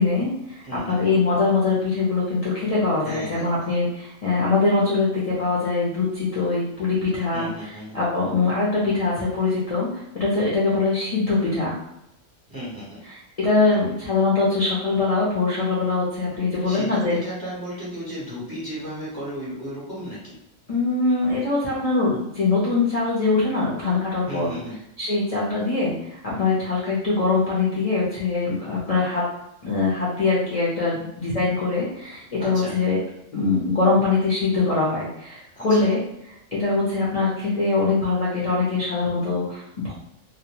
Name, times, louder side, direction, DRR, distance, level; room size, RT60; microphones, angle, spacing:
voice 1, 0.0-7.5 7.9-11.7 13.1-17.2 20.7-24.5 25.0-29.2 29.6-33.0 33.3-36.0 36.5-39.9, left 3 dB, 50° left, -6 dB, 0.4 m, -23 dB
voice 2, 0.6-1.1 3.0-3.7 7.3-8.0 12.5-13.0 16.6-20.3 24.3-24.8 32.4-32.8 35.5-35.9, equal, 25° right, -7 dB, 0.6 m, -34 dB
2.2 x 2.1 x 2.9 m, 0.83 s
omnidirectional pair, 1.3 m